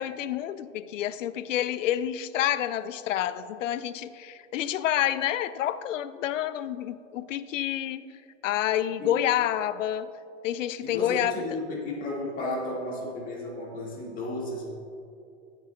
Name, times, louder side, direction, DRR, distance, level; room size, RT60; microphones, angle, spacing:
voice 1, 0.0-8.0 8.4-10.1 10.4-11.4, left 11 dB, 85° left, 15 dB, 0.5 m, -28 dB
voice 2, 10.8-14.6, left 2 dB, 20° left, -3 dB, 1.8 m, -33 dB
16.0 x 7.5 x 2.2 m, 2.6 s
hypercardioid pair, 140°, 37 cm